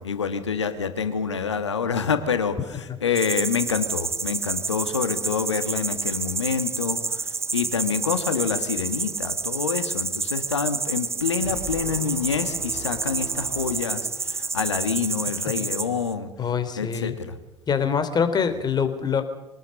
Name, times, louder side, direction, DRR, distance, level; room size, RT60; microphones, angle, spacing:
voice 1, 0.0-16.3 16.8-17.4, left 6 dB, 80° left, 10 dB, 1.7 m, -27 dB
sound 1, 3.2-16.1, right 4 dB, 20° right, 1.5 m, -29 dB
sound 2, 11.4-14.8, right 2 dB, 75° right, 5.6 m, -40 dB
voice 2, 16.4-17.1 17.7-19.2, left 6 dB, 30° left, 10 dB, 3.1 m, -24 dB
24.5 x 19.5 x 6.6 m, 1.0 s
figure-of-eight pair, 70°, 15 cm